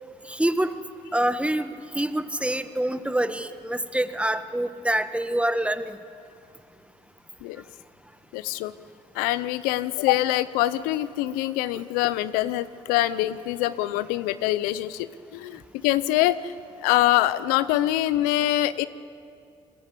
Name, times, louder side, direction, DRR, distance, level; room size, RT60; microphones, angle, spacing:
voice 1, 0.3-0.7 1.1-6.0, right 1 dB, 10° right, 10 dB, 1.6 m, -26 dB
voice 2, 8.3-8.7 9.1-16.5 16.8-18.9, left 15 dB, 85° left, 16 dB, 0.7 m, -24 dB
27.5 x 21.0 x 8.5 m, 2.4 s
hypercardioid pair, 55°, 15 cm